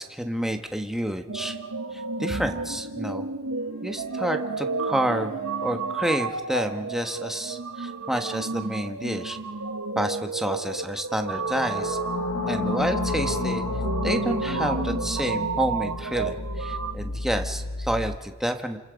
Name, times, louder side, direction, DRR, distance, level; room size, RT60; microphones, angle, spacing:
voice 1, 0.0-1.6 2.2-3.2 3.8-9.4 9.9-12.0 12.5-13.6 14.0-18.8, equal, ahead, 5 dB, 1.3 m, -29 dB
sound 1, 1.3-16.9, right 4 dB, 90° right, 1.1 m, -31 dB
sound 2, 4.8-6.1 11.2-18.2, left 3 dB, 75° left, 1.0 m, -32 dB
29.0 x 27.0 x 5.2 m, 1.3 s
head